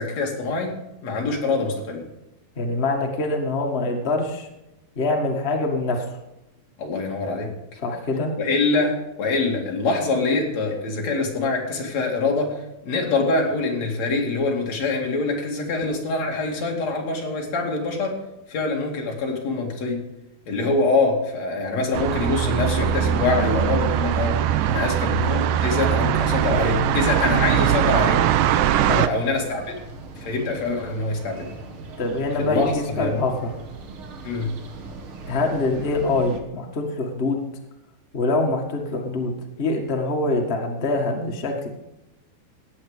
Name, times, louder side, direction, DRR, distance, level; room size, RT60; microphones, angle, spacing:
voice 1, 0.0-2.0 6.8-7.5 8.4-18.2 18.5-20.0 20.5-24.4 24.7-28.2 29.0-29.6 30.2-31.5 32.4-33.2 34.2-34.5, left 3 dB, 45° left, 0 dB, 3.3 m, -24 dB
voice 2, 2.6-4.5 4.9-6.0 7.8-8.3 28.9-29.0 32.0-33.5 35.3-37.4 38.1-41.7, left 2 dB, 85° left, 1 dB, 0.5 m, -24 dB
sound 1, 21.9-29.1, right 11 dB, 85° right, 2.0 m, -21 dB
sound 2, 28.6-36.4, right 3 dB, 55° right, 1.5 m, -40 dB
16.5 x 9.1 x 5.1 m, 0.93 s
omnidirectional pair, 4.6 m